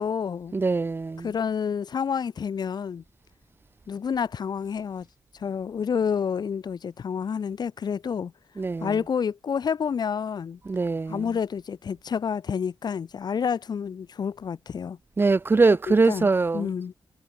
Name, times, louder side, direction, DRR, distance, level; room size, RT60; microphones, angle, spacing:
voice 1, 0.0-0.5 1.2-3.0 3.9-5.1 5.3-8.3 8.8-10.6 11.1-15.0 15.9-16.3 16.5-16.9, left 7 dB, 55° left, 5.6 m, -29 dB
voice 2, 0.5-1.3 8.6-9.0 10.7-11.3 15.2-16.7, right 3 dB, 25° right, 2.2 m, -22 dB
wide cardioid pair, 160°, 8 cm